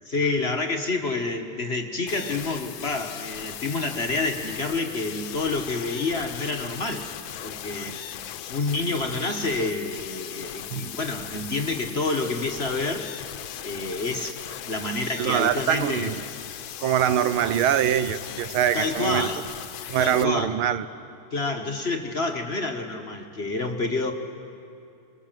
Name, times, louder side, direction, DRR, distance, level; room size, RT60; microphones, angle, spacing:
voice 1, 0.1-7.1 7.4-8.2 8.5-13.1 13.6-16.1 18.7-19.4 20.0-20.5 21.3-24.1, left 3 dB, 35° left, 3 dB, 1.5 m, -28 dB
sound 1, 2.1-20.2, left 10 dB, 75° left, 1.5 m, -38 dB
voice 2, 15.2-16.2 16.8-19.3 19.9-20.8, right 10 dB, 90° right, 13 dB, 1.6 m, -23 dB
24.5 x 24.0 x 7.5 m, 2.7 s
omnidirectional pair, 2.3 m